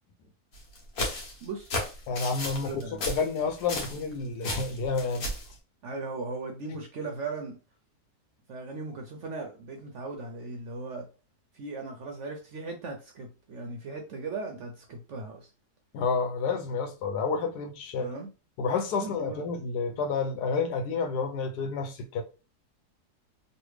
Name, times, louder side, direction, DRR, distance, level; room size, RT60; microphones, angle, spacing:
sound 1, 0.5-4.1 4.4-5.5, left 1 dB, 65° left, 1.5 m, -34 dB
voice 1, 1.4-1.8 2.6-3.1 5.8-7.6 8.5-11.1 11.5-15.5 18.0-18.3 18.9-19.4, right 3 dB, 65° right, 0.8 m, -38 dB
voice 2, 2.1-5.3 15.9-18.1 18.6-22.2, left 4 dB, 90° left, 1.3 m, -30 dB
3.3 x 2.5 x 3.1 m
omnidirectional pair, 1.7 m